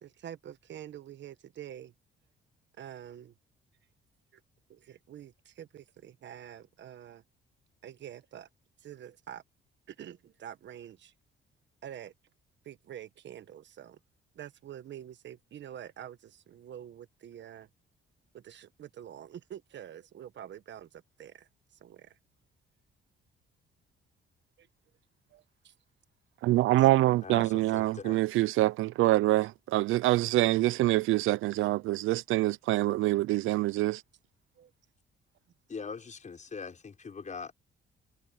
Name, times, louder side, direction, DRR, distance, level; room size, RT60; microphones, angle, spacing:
voice 1, 0.0-1.9 2.8-3.3 4.7-7.2 7.8-8.5 8.8-9.4 9.9-11.1 11.8-12.1 12.6-14.0 14.3-17.7 18.3-21.5 21.8-22.2 24.6-24.7 25.3-25.7 34.6-34.7, right 10 dB, 65° right, 1.3 m, -46 dB
voice 2, 26.4-34.0, right 17 dB, 85° right, 0.5 m, -25 dB
voice 3, 27.2-28.2 35.7-37.5, left 5 dB, 40° left, 6.1 m, -41 dB
cardioid pair, 90°, 20 cm